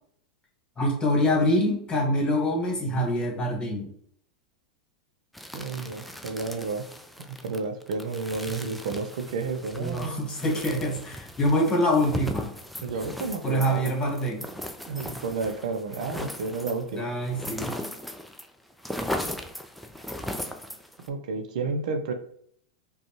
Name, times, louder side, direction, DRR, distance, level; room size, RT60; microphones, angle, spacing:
voice 1, 0.8-3.9 9.8-12.5 13.4-14.4 16.9-17.7, equal, 20° left, 0 dB, 1.6 m, -25 dB
sound 1, 5.3-18.5 18.7-21.1, left 1 dB, ahead, 0.4 m, -37 dB
voice 2, 5.5-6.8 7.2-10.3 12.8-13.9 14.9-17.1 21.1-22.1, right 4 dB, 70° right, 5 dB, 0.6 m, -31 dB
5.1 x 2.3 x 3.0 m, 0.64 s
hypercardioid pair, 100°, 4 cm